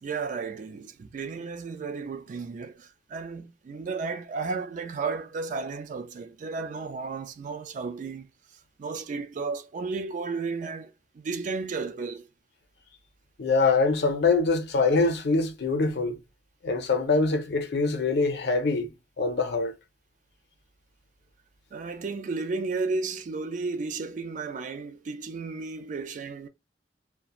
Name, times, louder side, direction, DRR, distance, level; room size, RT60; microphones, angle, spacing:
voice 1, 0.0-8.3 8.8-12.3 21.7-26.5, right 4 dB, 45° right, 0.3 m, -33 dB
voice 2, 13.4-16.2 16.6-18.9 19.2-19.7, left 3 dB, 70° left, 0.6 m, -24 dB
2.4 x 2.1 x 2.8 m
head